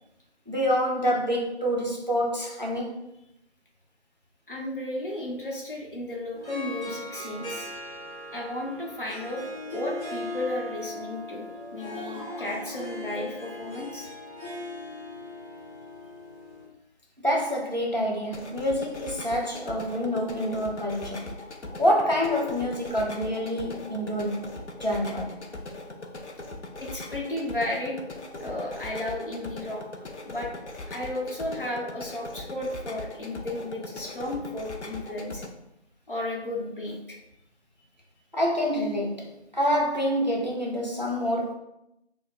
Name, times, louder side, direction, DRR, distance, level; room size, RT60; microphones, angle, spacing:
voice 1, 0.5-3.0 17.2-21.3 21.8-24.5 24.8-25.4 38.3-41.5, equal, 40° right, 0.5 m, -27 dB
voice 2, 4.5-7.7 8.3-9.4 9.7-14.1 26.8-28.0 28.4-29.8 30.2-30.5 30.9-35.4 36.1-37.2, left 1 dB, 50° left, 0.8 m, -34 dB
Harp, 6.3-16.7, left 1 dB, 25° right, 1.3 m, -39 dB
sound 1, 11.5-13.3, equal, 15° left, 1.3 m, -45 dB
sound 2, 18.2-35.5, left 2 dB, 90° left, 0.6 m, -40 dB
2.9 x 2.1 x 3.9 m
figure-of-eight pair, 170°, 34 cm